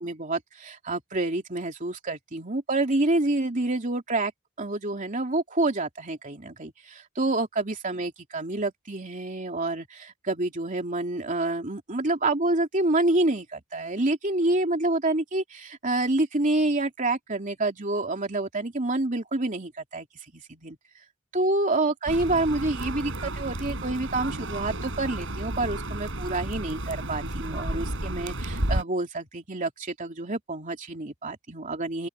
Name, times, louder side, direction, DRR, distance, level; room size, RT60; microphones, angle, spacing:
voice 1, 0.0-4.3 4.6-20.1 20.3-20.8 21.3-32.1, right 2 dB, 40° right, 3.0 m, -28 dB
sound 1, 22.1-28.8, right 1 dB, 65° right, 6.6 m, -32 dB
open air
head